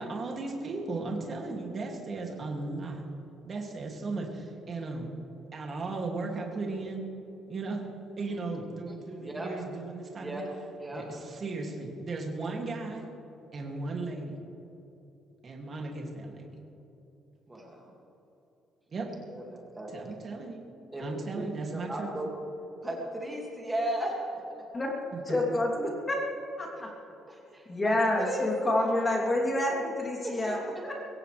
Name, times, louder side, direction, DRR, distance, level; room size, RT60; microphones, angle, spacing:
voice 1, 0.0-3.0 3.4-5.1 5.5-7.0 7.5-7.9 8.2-10.4 10.9-13.1 13.5-14.4 15.4-16.6 18.9-19.1 19.9-20.6 21.0-22.2 25.1-25.2, right 3 dB, 30° right, 0 dB, 2.5 m, -36 dB
voice 2, 8.9-9.5 10.2-10.5 10.8-11.1 17.5-18.0 19.3-19.9 20.9-21.1 21.7-22.3 22.8-24.4 27.3-28.5 28.7-29.2 30.2-30.9, right 1 dB, 10° right, -2 dB, 2.3 m, -36 dB
voice 3, 25.3-26.3 26.6-26.9 27.7-30.9, left 1 dB, 15° left, -1 dB, 3.1 m, -28 dB
22.5 x 17.0 x 3.4 m, 2.9 s
cardioid pair, 170°, 0 cm